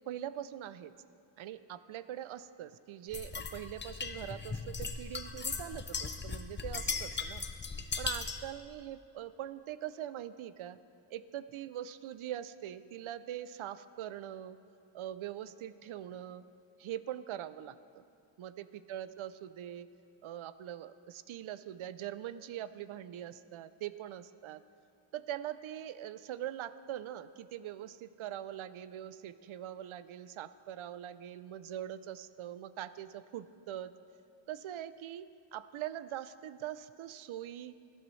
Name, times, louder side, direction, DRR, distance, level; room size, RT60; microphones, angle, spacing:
voice 1, 0.1-0.9 1.4-7.4 8.0-10.8 11.1-14.6 14.9-16.4 16.8-18.0 18.4-19.9 20.2-24.6 25.1-33.9 34.5-37.7, right 11 dB, 70° right, 14 dB, 0.6 m, -42 dB
sound 1, 3.1-8.5, left 4 dB, 25° left, 0.5 m, -38 dB
17.5 x 12.0 x 3.2 m, 2.6 s
wide cardioid pair, 170°, 50 cm